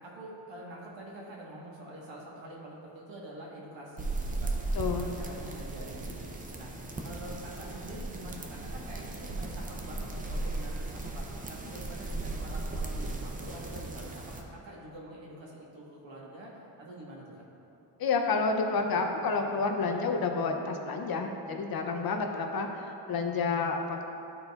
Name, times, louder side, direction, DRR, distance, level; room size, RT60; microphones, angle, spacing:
voice 1, 0.0-4.5 4.8-6.7 7.0-17.4, right 1 dB, 70° right, -4 dB, 1.4 m, -46 dB
sound 1, 4.0-14.4, right 2 dB, 20° right, 0.4 m, -36 dB
voice 2, 4.7-5.1 18.0-24.0, left 4 dB, 50° left, 4 dB, 0.6 m, -30 dB
11.0 x 3.9 x 2.3 m, 2.8 s
wide cardioid pair, 125°, 46 cm